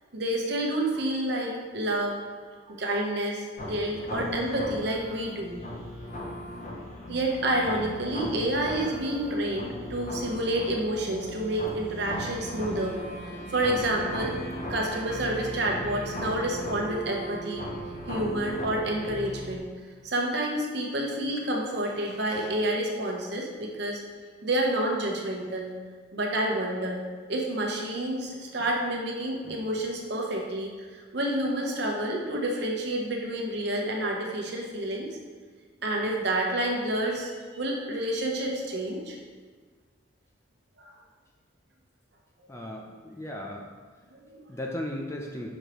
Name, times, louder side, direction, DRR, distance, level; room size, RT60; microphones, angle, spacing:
voice 1, 0.1-2.2 2.7-5.6 7.1-14.3 14.7-17.6 18.1-19.7 20.0-24.0 24.4-25.7 26.1-27.0 27.3-35.1 35.8-39.2 40.8-40.9 44.1-44.5, right 1 dB, 55° right, 0 dB, 0.9 m, -29 dB
sound 1, 3.6-19.6, equal, 35° left, 0.8 m, -37 dB
voice 2, 42.5-43.7 44.5-45.5, left 1 dB, 15° left, 0 dB, 0.4 m, -36 dB
6.4 x 4.9 x 3.0 m, 1.5 s
head